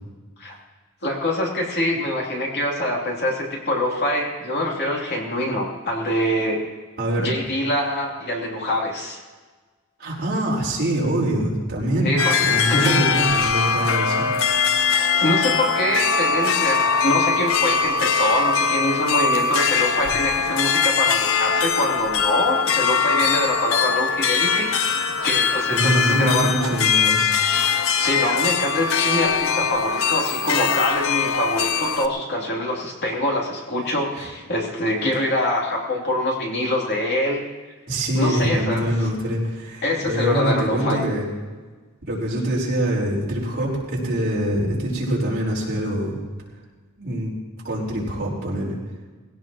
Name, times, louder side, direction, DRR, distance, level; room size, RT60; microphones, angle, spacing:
voice 1, 1.0-6.6 7.2-9.2 12.0-12.4 12.7-13.5 14.9-26.8 28.0-37.4 38.1-38.8 39.8-41.0, left 1 dB, 50° left, -2 dB, 3.0 m, -24 dB
voice 2, 7.0-7.3 10.0-14.5 25.7-27.3 34.2-34.3 37.9-41.3 42.1-46.2 47.0-47.3 47.6-48.8, right 1 dB, 45° right, -4 dB, 4.4 m, -24 dB
sound 1, 12.2-32.1, left 6 dB, 70° left, 0.7 m, -21 dB
20.5 x 17.0 x 3.0 m, 1.3 s
head